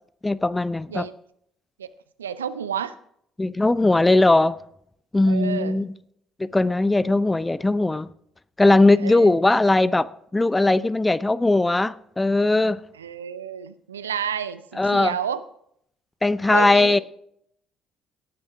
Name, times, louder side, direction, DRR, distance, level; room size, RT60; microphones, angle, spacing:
voice 1, 0.2-1.1 3.4-4.5 5.1-5.9 6.4-8.1 8.6-10.1 10.3-12.8 14.8-15.2 16.2-17.0, left 2 dB, 15° left, 17 dB, 0.6 m, -19 dB
voice 2, 2.2-2.9 5.3-5.8 8.9-9.3 13.0-15.4 16.5-17.0, right 8 dB, 80° right, 14 dB, 0.6 m, -30 dB
18.5 x 10.0 x 3.5 m, 0.70 s
figure-of-eight pair, 50°, 0 cm